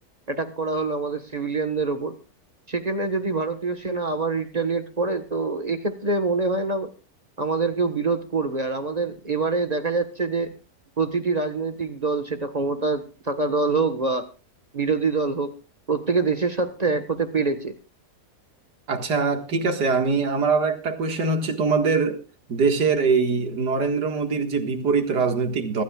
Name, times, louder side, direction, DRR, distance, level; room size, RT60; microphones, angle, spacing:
voice 1, 0.3-2.2 2.7-6.9 7.4-10.5 11.0-14.2 14.7-15.5 15.9-17.7, right 3 dB, 25° right, 1.4 m, -25 dB
voice 2, 18.9-22.2 22.5-25.8, right 4 dB, 85° right, 2.4 m, -23 dB
23.5 x 12.5 x 2.4 m
omnidirectional pair, 1.7 m